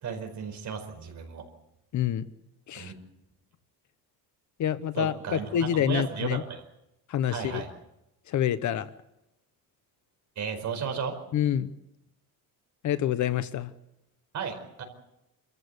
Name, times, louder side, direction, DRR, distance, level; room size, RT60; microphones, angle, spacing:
voice 1, 0.0-1.4 2.7-2.9 4.9-6.6 7.3-7.7 10.4-11.2 14.3-14.8, right 6 dB, 50° right, 5 dB, 4.8 m, -34 dB
voice 2, 1.9-2.3 2.7-2.9 4.6-6.4 7.1-7.6 8.3-8.9 11.3-11.7 12.8-13.7, left 10 dB, 50° left, 13 dB, 0.9 m, -27 dB
27.0 x 15.0 x 8.2 m, 0.88 s
cardioid pair, 180°, 37 cm